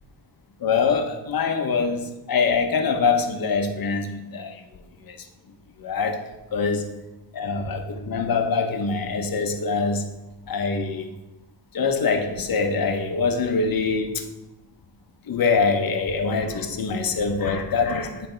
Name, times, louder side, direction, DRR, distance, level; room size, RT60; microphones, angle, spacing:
voice 1, 0.6-4.6 5.0-5.2 5.8-6.2 6.5-6.9 7.3-10.1 10.5-11.1 11.7-14.2 15.3-18.3, left 4 dB, 55° left, 5 dB, 0.9 m, -24 dB
9.0 x 3.4 x 4.4 m, 1.0 s
cardioid pair, 100°, 43 cm